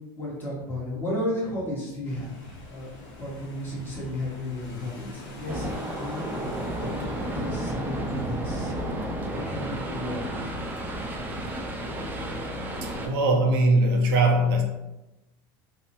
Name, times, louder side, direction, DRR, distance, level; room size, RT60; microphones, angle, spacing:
voice 1, 0.2-8.7 9.3-10.3, left 1 dB, 15° left, 1.0 m, -34 dB
sound 1, 2.0-13.2, left 2 dB, 70° left, 0.5 m, -45 dB
sound 2, 5.5-13.1, right 1 dB, 15° right, 0.3 m, -32 dB
voice 2, 12.8-14.6, right 1 dB, 75° right, 0.5 m, -21 dB
2.7 x 2.0 x 2.8 m
supercardioid pair, 135°, 12 cm